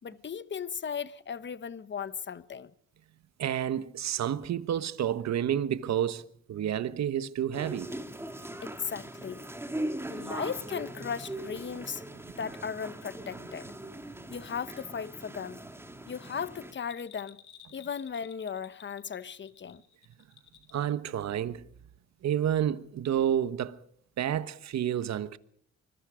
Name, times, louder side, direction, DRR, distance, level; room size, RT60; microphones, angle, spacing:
voice 1, 0.0-2.7 8.6-9.4 10.1-12.0 12.4-13.6 14.3-15.6 16.1-17.4 17.7-19.8, left 7 dB, 40° left, 1.2 m, -37 dB
voice 2, 3.4-7.9 20.7-21.6 22.2-23.8 24.2-25.4, right 10 dB, 60° right, 1.3 m, -30 dB
sound 1, 7.5-16.7, right 1 dB, 10° right, 2.6 m, -40 dB
Bell, 16.8-20.9 21.2-21.3, left 9 dB, 70° left, 3.0 m, -54 dB
25.5 x 22.0 x 5.1 m
cardioid pair, 90°, 30 cm